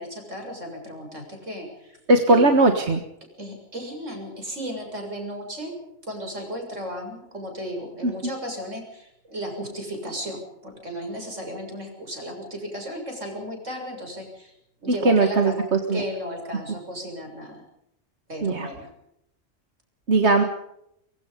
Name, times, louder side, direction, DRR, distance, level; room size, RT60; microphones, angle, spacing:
voice 1, 0.0-2.0 2.3-2.5 3.4-5.7 6.0-14.5 14.8-15.6 15.9-17.6 18.3-18.9, equal, 80° right, 3 dB, 7.4 m, -34 dB
voice 2, 2.1-3.0 8.0-8.1 14.9-16.0 18.4-18.7 20.1-20.4, right 2 dB, 65° right, 5 dB, 1.9 m, -19 dB
24.0 x 23.0 x 5.3 m, 0.79 s
omnidirectional pair, 1.3 m